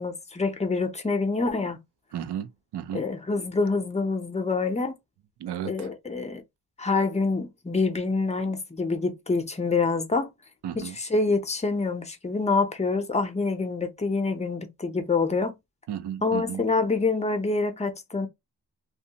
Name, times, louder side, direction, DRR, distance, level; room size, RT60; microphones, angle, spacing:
voice 1, 0.0-1.8 2.9-4.9 5.6-6.4 6.8-10.3 10.8-10.9 11.1-15.5 16.2-18.3, left 3 dB, 15° left, 0.6 m, -26 dB
voice 2, 2.1-3.0 5.4-5.9 10.6-11.0 15.9-16.6, right 10 dB, 90° right, 0.5 m, -34 dB
2.6 x 2.3 x 2.7 m
wide cardioid pair, 115°, 39 cm